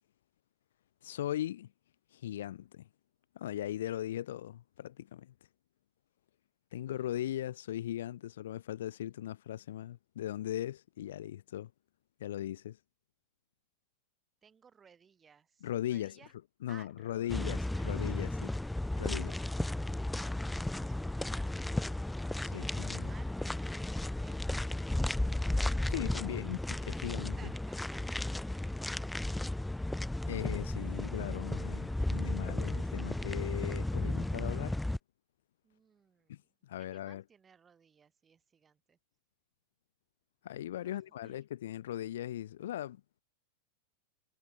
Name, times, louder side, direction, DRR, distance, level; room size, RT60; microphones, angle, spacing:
voice 1, 1.0-1.7 2.1-2.9 3.3-5.3 6.7-11.7 12.2-12.8 15.6-16.2 16.6-18.5 19.0-19.4 22.4-23.1 25.9-27.4 30.3-34.7 36.3-37.2 40.4-43.0, left 12 dB, 60° left, 1.2 m, -38 dB
voice 2, 6.8-7.4 14.4-16.3 16.7-17.9 20.7-22.0 22.5-25.2 27.2-29.4 35.6-36.5 36.8-39.0 40.8-41.4, right 6 dB, 20° right, 5.5 m, -61 dB
sound 1, 17.3-35.0, left 1 dB, 5° left, 0.5 m, -34 dB
figure-of-eight pair, 90°, 0 cm